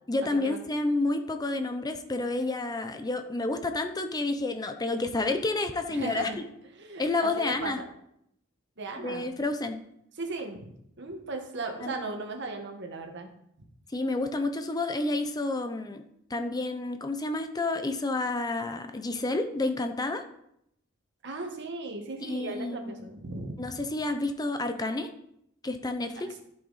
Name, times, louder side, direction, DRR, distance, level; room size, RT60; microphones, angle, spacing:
voice 1, 0.1-6.3 7.0-7.8 9.0-9.8 11.8-12.0 13.9-16.0 16.3-20.2 22.2-22.9 23.6-25.1 25.6-26.1, left 2 dB, 20° left, 7 dB, 0.6 m, -30 dB
voice 2, 5.9-6.4 6.7-7.8 8.8-9.3 10.2-10.7 11.0-13.3 21.2-23.7 26.3-26.4, right 3 dB, 60° right, 3 dB, 1.6 m, -37 dB
14.5 x 5.7 x 4.1 m, 0.76 s
head